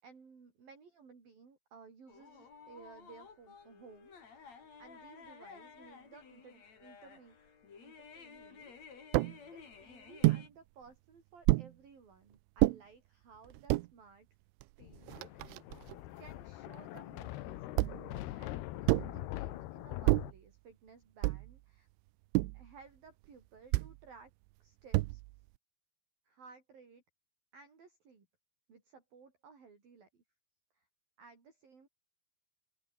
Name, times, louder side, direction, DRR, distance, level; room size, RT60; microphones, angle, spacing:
voice 1, 0.0-7.4 7.8-9.1 9.5-14.3 14.8-15.5 16.2-21.9 22.5-24.3 24.6-25.2 26.3-27.0 27.5-28.3 28.7-30.2 30.7-30.9 31.2-31.9, right 5 dB, 50° right, 7.0 m, -58 dB
sound 1, 2.1-10.5, left 5 dB, 40° left, 4.3 m, -54 dB
sound 2, 9.1-9.4 10.2-10.5 11.5-11.7 12.6-12.8 13.5-13.9 14.6-14.7 14.9-16.0 17.8-18.1 18.9-19.2 20.1-20.4 21.2-21.6 22.3-22.7 23.7-24.0 24.9-25.4, right 22 dB, 85° right, 3.1 m, -29 dB
Thunder, 14.8-20.3, left 16 dB, 75° left, 2.7 m, -43 dB
open air
omnidirectional pair, 5.4 m